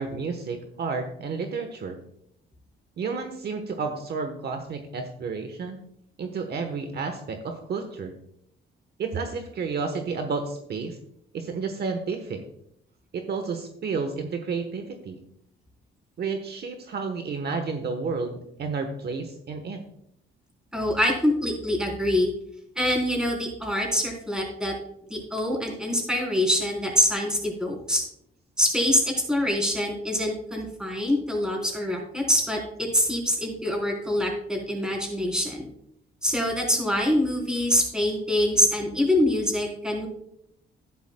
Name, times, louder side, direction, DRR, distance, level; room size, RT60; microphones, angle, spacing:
voice 1, 0.0-2.0 3.0-5.8 6.2-8.1 9.0-11.0 11.3-12.4 13.1-15.2 16.2-19.8, right 4 dB, 55° right, 6 dB, 1.1 m, -31 dB
voice 2, 20.7-22.3 22.8-24.7 25.1-28.0 28.6-35.7 36.2-40.1, left 1 dB, 5° right, -1 dB, 3.9 m, -25 dB
12.0 x 11.0 x 2.2 m, 0.74 s
cardioid pair, 90°, 20 cm